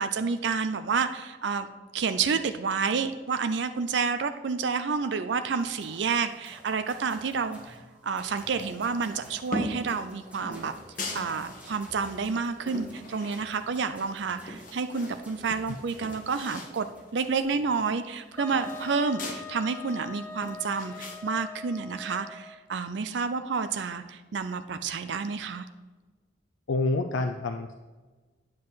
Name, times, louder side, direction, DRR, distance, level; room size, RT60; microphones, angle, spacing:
voice 1, 0.0-1.7 1.9-7.8 8.0-10.7 11.1-16.9 17.1-25.7, right 5 dB, 65° right, 9 dB, 0.5 m, -29 dB
sound 1, 5.6-17.4, equal, 10° right, 2.1 m, -52 dB
sound 2, 9.5-9.9 10.4-11.8 12.3-13.8 14.2-15.2 15.6-15.7 15.9-16.8 17.1-17.2 17.5-19.4 19.9-21.2, left 1 dB, 45° left, 1.4 m, -39 dB
Wind instrument woodwind instrument, 18.4-22.7, left 5 dB, 15° left, 0.3 m, -42 dB
voice 2, 26.7-27.7, left 2 dB, 90° left, 5 dB, 0.5 m, -27 dB
9.5 x 7.5 x 4.0 m, 1.3 s
head